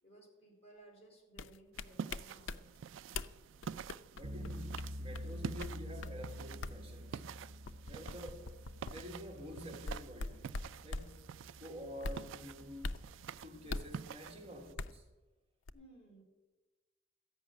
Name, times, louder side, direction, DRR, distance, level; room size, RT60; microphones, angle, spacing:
voice 1, 0.0-2.8 15.7-16.2, right 1 dB, 35° left, 3.5 m, -59 dB
sound 1, 1.4-2.6 3.1-3.3 3.6-5.3 5.6-5.7 6.0-6.1 6.6-6.8 7.7-9.0 9.8-11.1 12.0-12.3 12.8-13.1 13.7-14.0 14.8-15.0 15.7-15.8, left 3 dB, 80° left, 0.5 m, -41 dB
sound 2, 1.7-14.7, right 7 dB, 75° right, 0.3 m, -48 dB
voice 2, 4.1-7.3 7.9-8.6 8.8-10.5 10.8-11.2 11.6-13.0 13.4-15.0, equal, 30° right, 1.4 m, -49 dB
sound 3, 4.2-15.1, equal, 50° right, 0.7 m, -49 dB
13.5 x 5.7 x 9.2 m
head